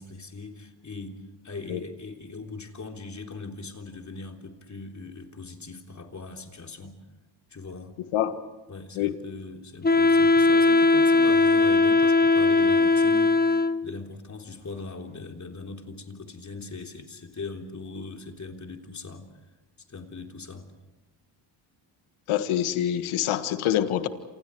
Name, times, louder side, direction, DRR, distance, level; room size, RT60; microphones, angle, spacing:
voice 1, 0.0-7.0 7.5-8.0 8.7-19.3 19.9-20.7, left 3 dB, 35° left, 3 dB, 3.6 m, -40 dB
Wind instrument woodwind instrument, 9.8-14.0, left 3 dB, 20° left, 1.0 m, -19 dB
voice 2, 22.3-24.1, left 11 dB, 80° left, 10 dB, 1.7 m, -25 dB
28.5 x 28.0 x 4.8 m, 1.1 s
cardioid pair, 75°, 49 cm